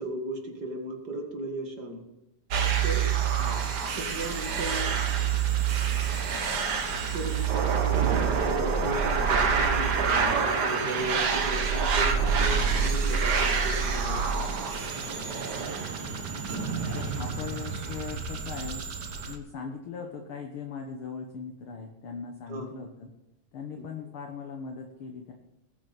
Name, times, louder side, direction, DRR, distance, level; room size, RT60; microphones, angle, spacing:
voice 1, 0.0-2.0 2.8-3.1 4.0-4.9 7.1-14.6 22.5-22.7 23.8-23.9, right 2 dB, 35° right, 2 dB, 1.9 m, -36 dB
sound 1, 2.5-19.4, right 6 dB, 90° right, 0.9 m, -27 dB
voice 2, 3.4-3.8 16.9-18.9 19.3-23.1 23.5-25.3, left 5 dB, 60° left, 3 dB, 1.4 m, -39 dB
20.5 x 9.2 x 4.1 m, 0.95 s
omnidirectional pair, 3.9 m